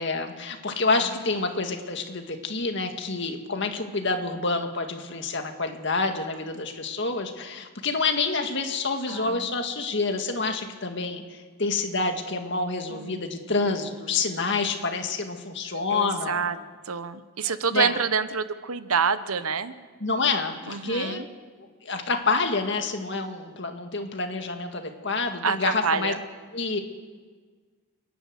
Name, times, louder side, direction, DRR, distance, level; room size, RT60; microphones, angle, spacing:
voice 1, 0.0-16.5 17.4-18.0 20.0-21.2 21.8-26.1 26.5-26.8, left 3 dB, 55° left, 5 dB, 2.0 m, -28 dB
voice 2, 9.1-9.5 12.9-13.2 15.7-16.6 16.8-19.7 20.7-21.3 25.4-26.2, right 6 dB, 80° right, 13 dB, 1.0 m, -27 dB
29.5 x 11.0 x 8.0 m, 1.5 s
head